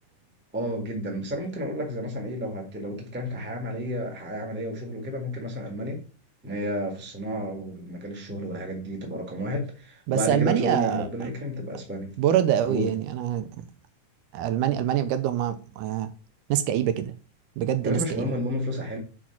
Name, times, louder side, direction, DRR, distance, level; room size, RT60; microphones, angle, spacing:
voice 1, 0.5-6.0 6.4-12.1 12.7-12.9 17.8-19.0, equal, 5° right, 0.8 m, -31 dB
voice 2, 10.1-11.3 12.2-13.6 14.3-16.1 16.5-17.1 17.6-18.3, right 10 dB, 80° right, 2.1 m, -25 dB
5.8 x 4.8 x 5.8 m
omnidirectional pair, 3.8 m